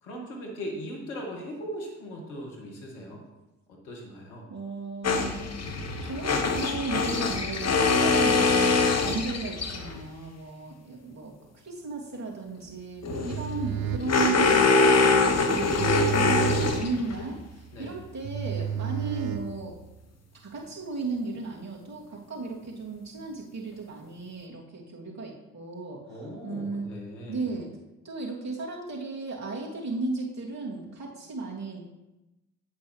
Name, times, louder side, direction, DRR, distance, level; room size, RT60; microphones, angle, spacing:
voice 1, 0.0-3.2 3.7-4.4 17.7-18.0 26.1-27.5, equal, 85° left, 0 dB, 1.8 m, -39 dB
voice 2, 4.5-5.5 6.0-11.3 11.6-14.6 15.5-19.7 20.4-26.9 27.3-27.7 28.0-31.8, right 3 dB, 40° right, -4 dB, 3.0 m, -35 dB
sound 1, 5.0-10.0 13.0-17.2, left 4 dB, 40° left, 1.2 m, -24 dB
sound 2, 13.0-20.0, right 9 dB, 60° right, 0.9 m, -33 dB
8.8 x 8.2 x 3.3 m, 1.0 s
hypercardioid pair, 45°, 40 cm